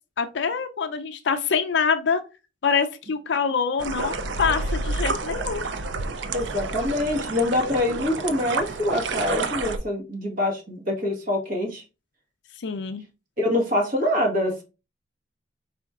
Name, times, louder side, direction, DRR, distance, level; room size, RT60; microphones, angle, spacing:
voice 1, 0.2-2.2 2.6-5.6 12.6-13.0, left 6 dB, 60° left, 7 dB, 0.4 m, -25 dB
sound 1, 3.8-9.8, right 3 dB, 65° right, 0.5 m, -29 dB
voice 2, 6.3-11.8 13.4-14.6, left 1 dB, 45° right, 1 dB, 1.4 m, -25 dB
4.4 x 4.2 x 2.4 m, 0.30 s
head